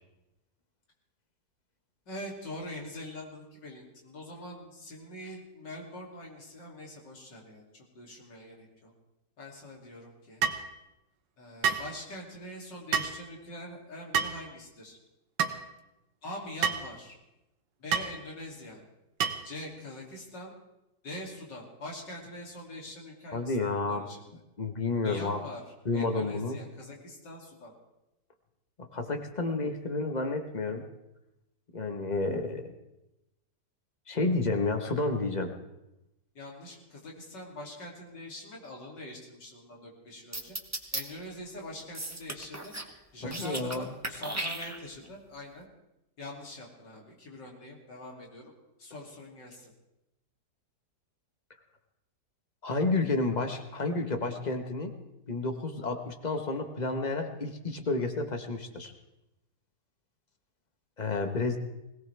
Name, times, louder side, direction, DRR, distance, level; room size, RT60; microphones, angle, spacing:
voice 1, 2.1-8.9 9.4-10.4 11.4-15.0 16.2-17.2 17.8-18.8 19.4-20.5 21.0-24.2 25.0-25.6 25.9-27.7 36.4-40.6 40.9-42.7 43.1-45.7 46.2-48.5 48.8-49.7, left 1 dB, 90° left, -1 dB, 3.6 m, -44 dB
sound 1, 10.4-10.6 11.6-11.9 12.9-13.2 14.1-14.4 15.4-15.6 16.6-16.9 17.9-18.1 19.2-19.5, right 7 dB, 90° right, 1.6 m, -28 dB
voice 2, 23.3-24.1 24.6-25.4 25.8-26.6 28.9-30.8 31.7-32.7 34.1-35.5 43.2-43.8 52.6-54.9 55.3-58.9 61.0-61.6, left 3 dB, 25° left, 6 dB, 1.3 m, -30 dB
sound 2, 40.3-41.0 41.9-42.9 43.2-43.8 44.0-45.1, right 1 dB, 10° right, 0.9 m, -35 dB
21.0 x 17.5 x 3.5 m, 0.92 s
omnidirectional pair, 1.8 m